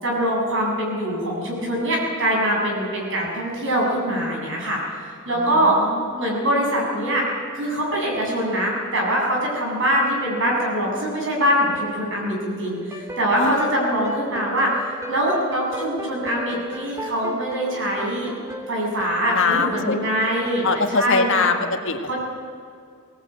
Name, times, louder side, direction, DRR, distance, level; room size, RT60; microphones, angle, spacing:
voice 1, 0.0-5.8 6.1-7.2 7.5-14.8 15.1-18.3 18.7-21.5 22.1-22.2, equal, 60° right, -2 dB, 7.1 m, -23 dB
voice 2, 5.3-6.1 13.4-13.6 19.3-20.0 20.6-22.1, left 4 dB, 60° left, 5 dB, 1.9 m, -23 dB
sound 1, 11.4-12.6 12.9-20.8, equal, 15° right, 2.9 m, -36 dB
20.5 x 19.0 x 9.0 m, 2.3 s
head